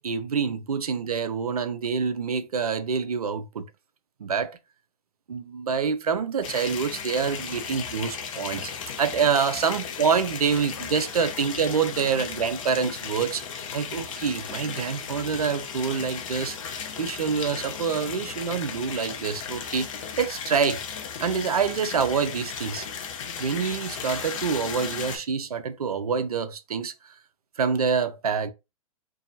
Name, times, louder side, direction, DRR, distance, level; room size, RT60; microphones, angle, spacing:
voice 1, 0.0-3.7 4.2-4.6 5.3-8.7 9.0-13.5 13.7-19.9 20.2-20.8 21.2-22.9 23.4-27.1 27.6-28.5, right 6 dB, 85° right, 0.5 m, -26 dB
sound 1, 6.4-25.2, left 7 dB, 60° left, 0.7 m, -35 dB
2.6 x 2.2 x 2.6 m
hypercardioid pair, 110°, 19 cm